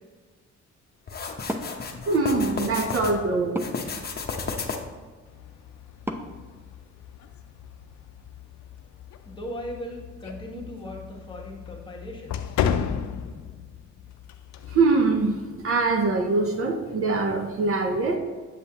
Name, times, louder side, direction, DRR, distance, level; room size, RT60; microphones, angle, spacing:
sound 1, 1.1-3.2 3.6-5.0, left 4 dB, 30° left, 0.8 m, -33 dB
Wood, 1.4-7.4, equal, 10° right, 0.5 m, -40 dB
voice 1, 2.1-3.6 14.7-18.2, right 3 dB, 50° right, 3 dB, 0.8 m, -23 dB
sound 2, 5.3-16.1, left 8 dB, 70° left, 0.5 m, -35 dB
voice 2, 9.3-12.6, equal, 15° left, -2 dB, 1.4 m, -38 dB
7.5 x 5.4 x 2.9 m, 1.4 s
cardioid pair, 90°, 30 cm